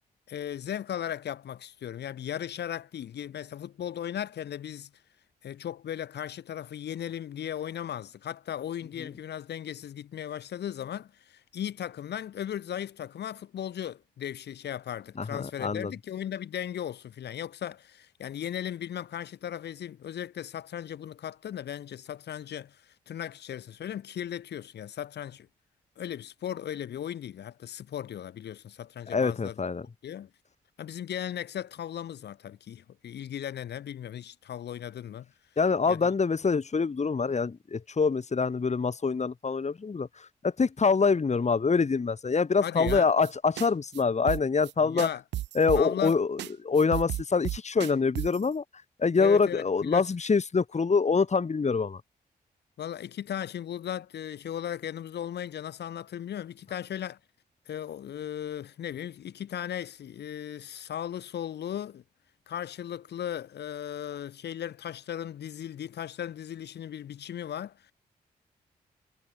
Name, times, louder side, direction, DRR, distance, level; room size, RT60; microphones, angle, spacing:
voice 1, 0.3-4.9 5.4-25.5 26.0-29.6 30.0-30.3 30.8-35.3 35.9-36.1 42.6-43.1 44.8-45.2 45.7-46.2 49.2-50.1 52.8-57.2 57.7-62.0 62.5-67.9, left 10 dB, 70° left, 2.3 m, -37 dB
voice 2, 15.2-15.9 29.1-29.9 35.6-45.1 45.6-48.6 49.0-52.0, left 5 dB, 40° left, 1.9 m, -25 dB
sound 1, 42.9-43.3 43.6-43.7 43.9-44.0 44.3-44.7 45.0-46.1 46.4-46.5 46.8-48.5, right 14 dB, 80° right, 1.3 m, -33 dB
hypercardioid pair, 40°, 18 cm